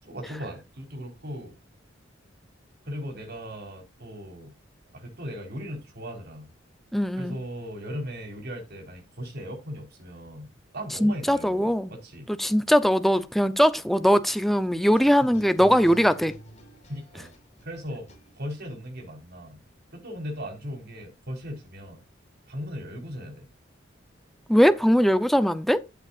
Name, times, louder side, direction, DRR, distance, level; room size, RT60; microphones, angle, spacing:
voice 1, 0.0-1.5 2.8-4.5 4.9-6.5 7.2-12.3 14.9-15.0 16.9-17.3 17.6-18.1 18.4-19.6 19.9-22.0 22.5-23.5, equal, 55° right, 4.5 m, -38 dB
voice 2, 6.9-7.4 11.0-11.9 12.3-16.3 24.5-25.8, equal, ahead, 0.7 m, -21 dB
sound 1, 15.0-18.7, right 1 dB, 35° left, 4.3 m, -47 dB
13.5 x 8.2 x 2.5 m
head